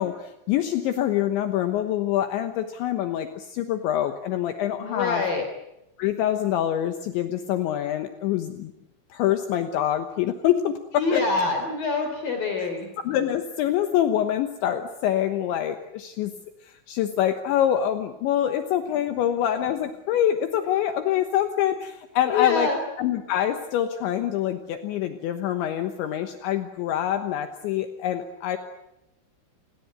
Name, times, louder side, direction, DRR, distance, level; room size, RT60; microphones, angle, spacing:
voice 1, 0.0-5.2 6.0-8.7 9.1-11.2 12.6-12.7 13.0-16.3 16.6-22.7 23.0-28.6, left 11 dB, 75° left, 7 dB, 3.3 m, -25 dB
voice 2, 4.8-5.5 11.0-12.9 22.3-22.8, left 4 dB, 50° left, 5 dB, 4.6 m, -25 dB
30.0 x 21.5 x 8.1 m, 0.89 s
omnidirectional pair, 5.8 m